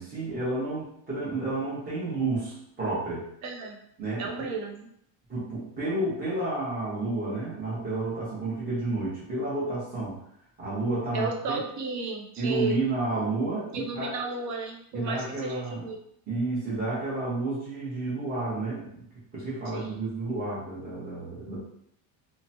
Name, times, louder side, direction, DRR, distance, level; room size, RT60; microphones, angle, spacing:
voice 1, 0.0-3.2 4.0-4.5 5.3-10.2 10.6-11.6 12.4-14.1 14.9-15.8 16.3-19.0 19.3-21.6, right 2 dB, 20° right, -9 dB, 1.1 m, -31 dB
voice 2, 3.4-3.8 4.2-4.9 11.1-12.8 13.7-16.0 19.7-20.0, right 4 dB, 45° right, 2 dB, 0.6 m, -33 dB
2.9 x 2.2 x 2.8 m, 0.71 s
cardioid pair, 140°, 40 cm